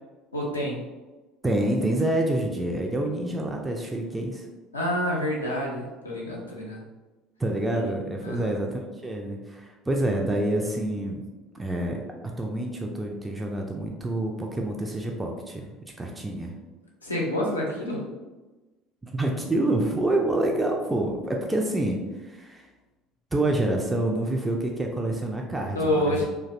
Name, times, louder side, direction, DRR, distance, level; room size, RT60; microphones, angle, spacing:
voice 1, 0.3-0.8 4.7-6.8 7.7-7.9 8.2-8.5 17.0-18.0 25.7-26.2, left 1 dB, 85° left, -3 dB, 0.5 m, -28 dB
voice 2, 1.4-4.5 7.4-11.2 11.5-12.0 12.4-15.7 16.0-16.5 19.0-22.7 23.3-25.8 26.1-26.2, right 1 dB, 10° right, 0 dB, 0.3 m, -27 dB
2.5 x 2.0 x 2.4 m, 1.2 s
figure-of-eight pair, 60°, 0 cm